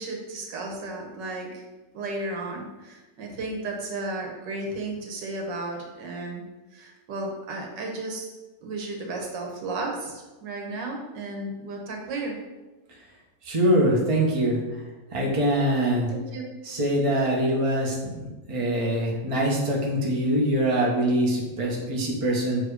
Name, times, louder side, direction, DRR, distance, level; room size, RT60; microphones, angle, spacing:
voice 1, 0.0-1.6 1.9-6.4 6.7-8.3 8.6-12.4 16.3-16.4, right 2 dB, 80° right, 0 dB, 1.8 m, -34 dB
voice 2, 13.4-14.8 15.1-16.1 16.6-22.7, right 1 dB, 20° right, -2 dB, 1.0 m, -24 dB
7.0 x 3.3 x 4.9 m, 1.1 s
omnidirectional pair, 1.9 m